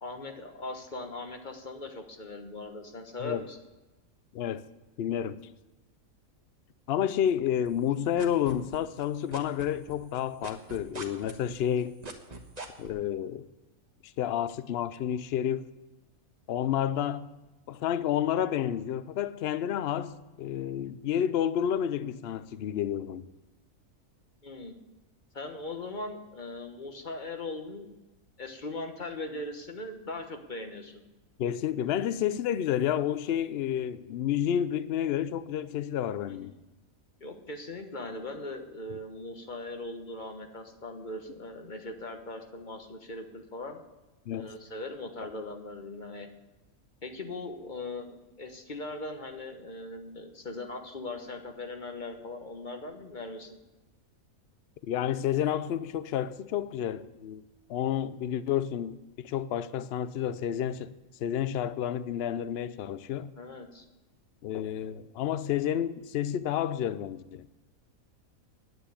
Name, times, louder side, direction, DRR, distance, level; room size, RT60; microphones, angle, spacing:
voice 1, 0.0-3.6 24.4-24.7 25.3-28.0 28.4-31.0 36.3-36.5 37.2-43.8 44.3-46.3 47.0-53.6 63.4-63.9, left 2 dB, 35° left, 1.2 m, -40 dB
voice 2, 4.3-4.6 5.0-5.4 6.9-12.0 12.8-13.5 14.2-15.7 16.5-17.3 17.7-23.3 31.4-36.5 44.3-44.5 54.9-57.4 57.7-60.9 61.2-63.3 64.4-67.5, left 10 dB, 60° left, 0.7 m, -30 dB
sound 1, 7.6-9.0 9.3-12.9, right 3 dB, 30° right, 1.3 m, -42 dB
9.6 x 9.5 x 8.5 m
omnidirectional pair, 1.5 m